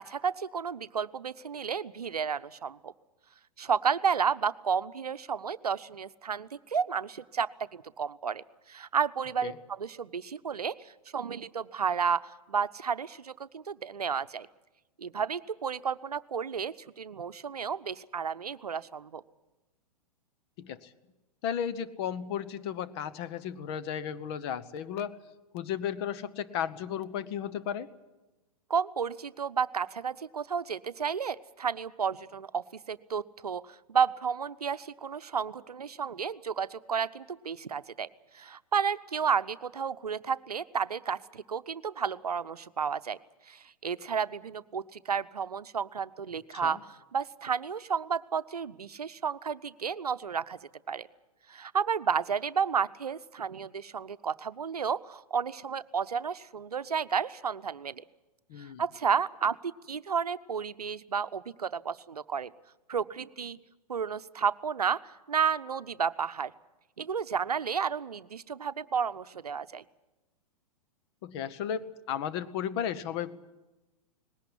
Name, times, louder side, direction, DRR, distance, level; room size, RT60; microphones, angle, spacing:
voice 1, 0.0-2.9 3.6-14.5 15.0-19.2 28.7-38.1 38.3-43.2 43.5-50.6 50.9-51.1 51.5-58.0 58.6-62.5 62.9-63.6 63.9-66.5 67.0-69.8, right 6 dB, 80° right, 13 dB, 0.7 m, -32 dB
voice 2, 20.6-20.9 21.4-25.2 25.5-27.9 46.5-46.8 58.5-58.8 71.2-73.5, left 9 dB, 45° left, 13 dB, 1.0 m, -34 dB
20.0 x 17.0 x 9.9 m, 1.1 s
figure-of-eight pair, 110°, 19 cm